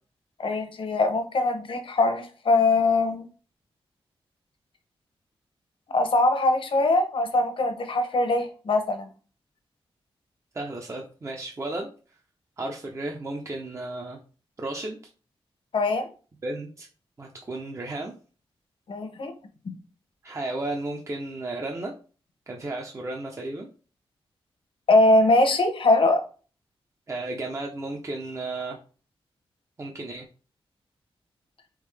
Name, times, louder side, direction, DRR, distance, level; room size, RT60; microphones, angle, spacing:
voice 1, 0.4-3.3 5.9-9.1 15.7-16.1 18.9-19.3 19.6-19.7 24.9-26.2, left 2 dB, 60° left, 7 dB, 0.8 m, -22 dB
voice 2, 10.5-11.9 12.6-14.2 14.6-15.0 16.4-16.9 17.2-18.1 20.2-21.9 22.5-23.7 27.1-28.8 29.8-30.3, right 2 dB, 30° right, 1 dB, 0.6 m, -33 dB
3.6 x 3.6 x 3.2 m, 0.38 s
wide cardioid pair, 95°, 10 cm